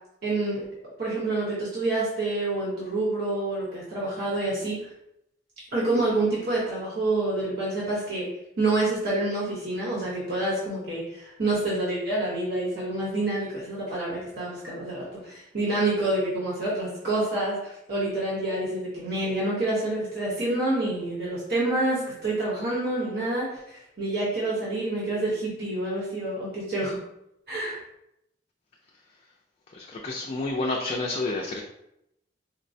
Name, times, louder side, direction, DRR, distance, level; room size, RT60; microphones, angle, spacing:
voice 1, 0.2-0.6 1.0-4.9 5.7-8.3 8.6-27.0 27.5-27.8, right 2 dB, 60° right, -6 dB, 1.0 m, -27 dB
voice 2, 29.7-31.6, left 2 dB, 35° left, -1 dB, 0.3 m, -29 dB
4.4 x 2.1 x 2.6 m, 0.81 s
head